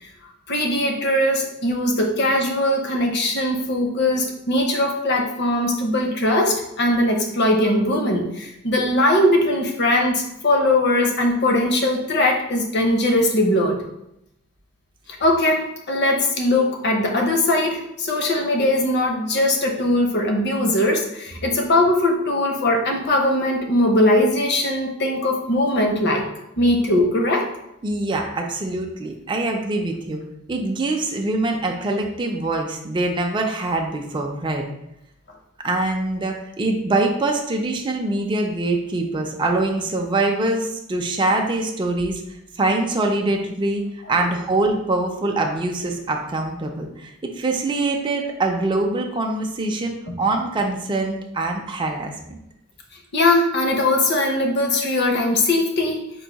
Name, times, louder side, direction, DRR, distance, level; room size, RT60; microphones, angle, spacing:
voice 1, 0.5-13.8 15.2-26.3 26.6-27.5 50.1-50.2 53.1-56.0, left 1 dB, 55° left, 2 dB, 0.8 m, -20 dB
voice 2, 27.8-30.2 30.5-34.7 35.6-42.2 42.6-47.1 47.4-52.4, right 2 dB, 25° right, 2 dB, 0.4 m, -24 dB
4.6 x 2.6 x 4.0 m, 0.82 s
head